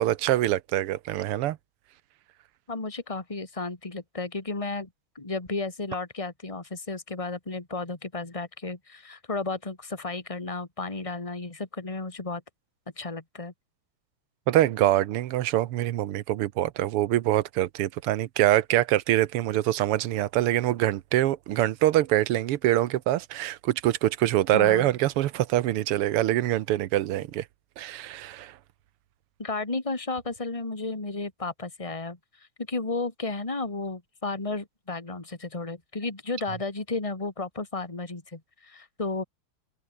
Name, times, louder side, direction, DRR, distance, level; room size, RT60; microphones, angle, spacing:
voice 1, 0.0-1.6 14.5-27.4 27.8-28.5, right 14 dB, 90° right, 1.8 m, -24 dB
voice 2, 2.7-4.9 5.1-12.4 13.0-13.5 24.5-24.9 29.4-32.2 32.6-39.2, left 3 dB, 15° left, 2.6 m, -33 dB
omnidirectional pair, 2.4 m